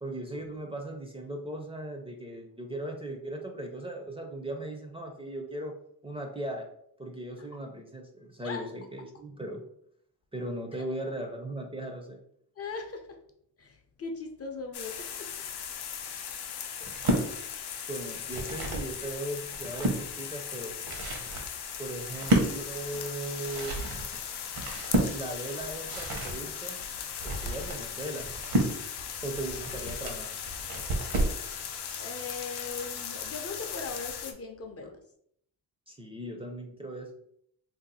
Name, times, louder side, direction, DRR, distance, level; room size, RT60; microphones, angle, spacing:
voice 1, 0.0-5.7 6.0-6.7 7.0-9.6 10.3-12.2 17.9-20.8 21.8-23.8 25.1-26.8 27.2-28.3 29.2-30.3 34.8-34.9 35.9-37.1, right 1 dB, 15° right, 2 dB, 0.4 m, -38 dB
voice 2, 12.6-13.2 13.6-15.3 16.8-16.9 32.0-34.9, left 4 dB, 40° left, 4 dB, 0.5 m, -39 dB
sound 1, 14.7-34.3, left 8 dB, 85° left, 0.6 m, -38 dB
sound 2, 16.8-17.3 18.0-18.9 19.4-20.0 20.6-31.4, right 1 dB, 70° right, 1.0 m, -31 dB
2.7 x 2.3 x 4.0 m, 0.69 s
cardioid pair, 105°, 38 cm